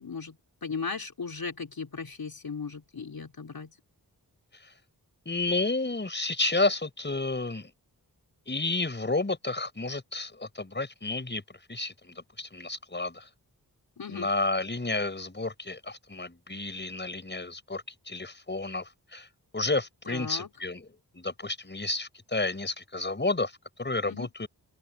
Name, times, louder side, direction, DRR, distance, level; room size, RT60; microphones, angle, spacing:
voice 1, 0.0-3.8 14.0-14.3 20.1-20.5 24.0-24.3, left 5 dB, 70° left, 4.6 m, -37 dB
voice 2, 5.2-7.7 8.5-11.4 11.7-13.3 14.1-19.3 19.5-23.5 23.8-24.5, left 2 dB, 30° left, 6.4 m, -31 dB
open air
wide cardioid pair, 115°, 38 cm